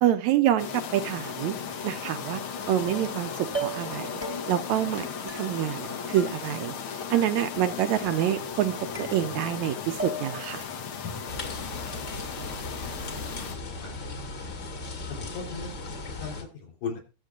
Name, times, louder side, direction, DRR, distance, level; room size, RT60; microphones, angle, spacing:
voice 1, 0.0-1.6 1.8-2.4 2.7-4.1 4.5-6.7 7.1-10.7, right 11 dB, 75° right, 10 dB, 2.0 m, -27 dB
sound 1, 0.6-13.6, left 6 dB, 55° left, 1.7 m, -36 dB
sound 2, 2.9-3.2 3.5-3.9 4.2-4.7 5.3-5.9 6.2-6.8 7.1-7.7 8.0-8.6 8.9-9.6 10.0-10.5, right 2 dB, 5° right, 1.2 m, -38 dB
sound 3, 11.3-16.4, left 2 dB, 35° left, 2.5 m, -37 dB
voice 2, 12.4-14.1 15.1-15.7 16.2-17.0, left 5 dB, 80° left, 0 dB, 5.3 m, -39 dB
22.0 x 7.4 x 2.5 m, 0.30 s
omnidirectional pair, 3.5 m